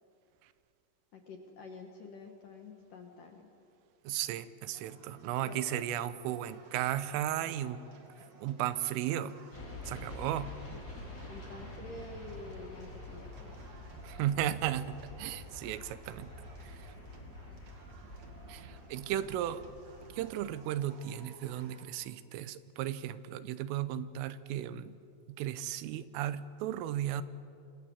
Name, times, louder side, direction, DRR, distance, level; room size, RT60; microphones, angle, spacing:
voice 1, 1.1-3.5 5.4-5.8 10.7-10.8 11.3-13.7, left 3 dB, 60° left, 3 dB, 2.3 m, -48 dB
voice 2, 4.0-7.8 8.4-9.4 9.8-10.5 14.0-16.3 16.6-16.9 18.5-19.7 20.1-25.0 25.3-27.2, right 11 dB, 85° right, 14 dB, 3.4 m, -35 dB
sound 1, 4.7-21.9, right 4 dB, 45° right, 2.5 m, -56 dB
sound 2, 9.5-20.3, left 2 dB, 20° left, 4.3 m, -47 dB
26.5 x 26.0 x 7.3 m, 2.6 s
omnidirectional pair, 5.7 m